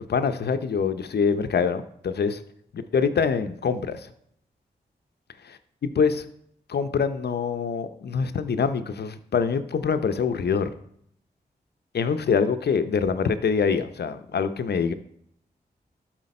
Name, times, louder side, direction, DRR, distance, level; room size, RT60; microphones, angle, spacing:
voice 1, 0.1-2.4 2.9-4.1 5.8-6.2 6.7-10.7 11.9-14.9, left 6 dB, 70° left, 10 dB, 0.7 m, -24 dB
12.0 x 4.5 x 4.3 m, 0.70 s
cardioid pair, 50°, 18 cm